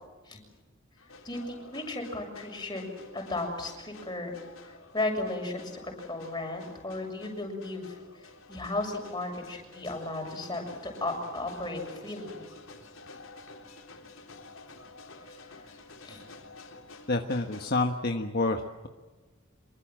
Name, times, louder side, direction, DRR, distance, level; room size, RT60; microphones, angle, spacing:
sound 1, 1.0-17.8, left 3 dB, 80° left, 3.7 m, -50 dB
voice 1, 1.2-2.8 3.1-4.4 4.9-8.0 8.2-12.4 16.0-16.2, left 2 dB, 20° left, 2 dB, 6.9 m, -35 dB
voice 2, 17.1-18.9, left 2 dB, 50° left, 4 dB, 1.4 m, -28 dB
26.5 x 23.5 x 7.5 m, 1.3 s
head